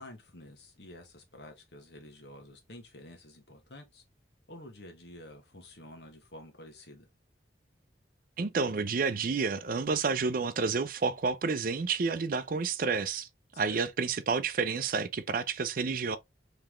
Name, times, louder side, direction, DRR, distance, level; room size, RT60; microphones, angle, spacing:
voice 1, 0.0-4.0 4.5-7.1 13.5-13.9, left 1 dB, 70° left, 1.3 m, -50 dB
voice 2, 8.4-13.3 13.6-16.2, right 4 dB, 50° right, 0.4 m, -30 dB
3.8 x 3.3 x 3.1 m
head